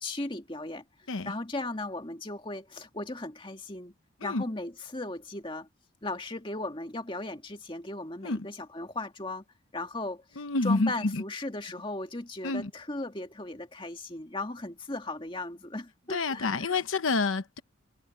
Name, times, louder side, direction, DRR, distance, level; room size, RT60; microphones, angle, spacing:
voice 1, 0.0-0.8 1.2-3.9 4.2-5.7 6.0-9.4 9.7-16.8, left 2 dB, 25° left, 2.1 m, -37 dB
voice 2, 10.4-11.2 12.4-12.7 16.1-17.6, left 3 dB, 85° left, 1.0 m, -28 dB
head